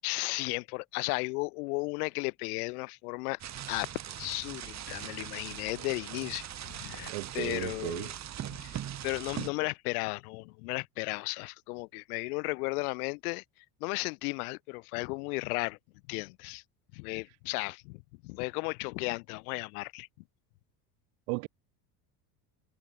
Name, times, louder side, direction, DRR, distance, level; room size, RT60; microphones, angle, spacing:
voice 1, 0.0-3.4 3.7-3.9 4.2-8.1 8.5-8.8 9.0-13.4 13.8-15.8 16.1-16.6 16.9-20.1, left 27 dB, 85° left, 7.4 m, -35 dB
sound 1, 3.4-9.5, right 10 dB, 40° right, 3.4 m, -41 dB
voice 2, 7.1-8.1 21.3-21.5, right 40 dB or more, 80° right, 3.1 m, -35 dB
supercardioid pair, 125°, 43 cm